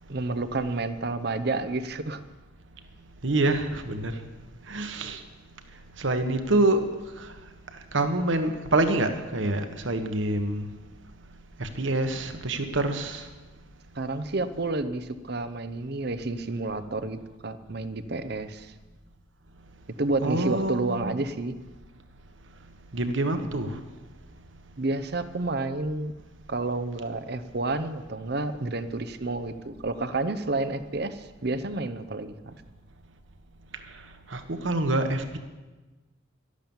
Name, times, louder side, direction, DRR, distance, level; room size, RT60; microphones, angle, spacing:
voice 1, 0.1-2.2 13.9-18.7 20.0-21.6 24.8-26.1 26.5-32.5, right 2 dB, 50° right, 12 dB, 0.8 m, -30 dB
voice 2, 3.2-4.1 4.7-5.2 6.0-6.9 7.9-10.7 11.6-13.2 20.2-21.2 22.9-23.7 34.3-35.4, right 2 dB, 65° right, 7 dB, 1.4 m, -26 dB
12.0 x 11.5 x 7.2 m, 1.2 s
head